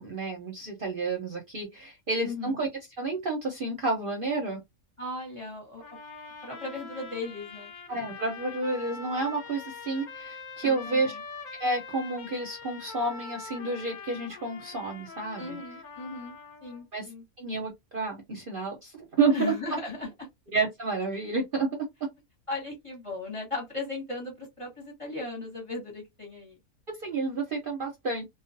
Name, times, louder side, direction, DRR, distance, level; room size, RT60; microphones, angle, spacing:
voice 1, 0.0-2.7 3.0-4.6 7.9-11.2 11.6-15.6 16.9-17.1 17.4-19.5 20.5-22.1 26.9-28.2, right 3 dB, 50° right, 0.7 m, -30 dB
voice 2, 2.2-2.6 5.0-5.8 6.4-7.7 10.6-11.2 15.4-17.2 19.3-20.3 22.5-26.6, left 3 dB, 25° left, 0.9 m, -37 dB
sound 1, 5.8-16.8, left 4 dB, 50° left, 0.5 m, -43 dB
2.4 x 2.3 x 2.5 m
omnidirectional pair, 1.5 m